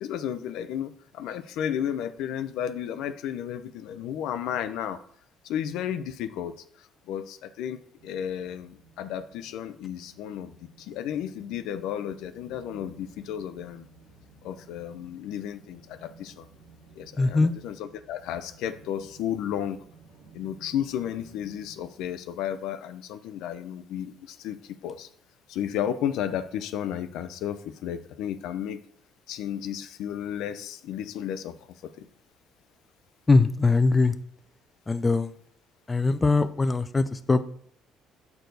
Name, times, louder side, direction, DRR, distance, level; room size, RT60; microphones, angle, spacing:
voice 1, 0.0-5.0 5.4-13.9 14.4-16.5 17.0-19.8 20.3-25.1 25.5-28.8 29.3-31.6 31.8-32.1, left 10 dB, 80° left, 10 dB, 0.5 m, -33 dB
sound 1, 8.0-21.8, right 4 dB, 85° right, 1.4 m, -54 dB
voice 2, 17.2-17.5 33.3-34.2 34.9-35.3 35.9-37.4, left 3 dB, 20° left, 11 dB, 0.4 m, -21 dB
6.7 x 4.6 x 3.9 m, 0.63 s
cardioid pair, 100°, 0 cm